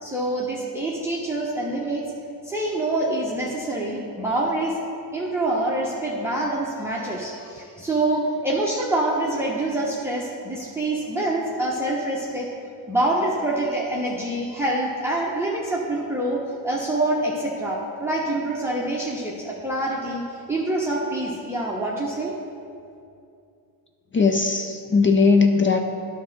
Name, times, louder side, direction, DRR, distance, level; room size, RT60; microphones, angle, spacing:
voice 1, 0.0-2.0 2.4-4.8 5.1-12.5 12.9-22.3, right 1 dB, 5° right, -4 dB, 1.0 m, -26 dB
voice 2, 24.1-25.8, left 4 dB, 25° left, 5 dB, 0.5 m, -18 dB
10.0 x 3.6 x 6.1 m, 2.5 s
cardioid pair, 85°, 46 cm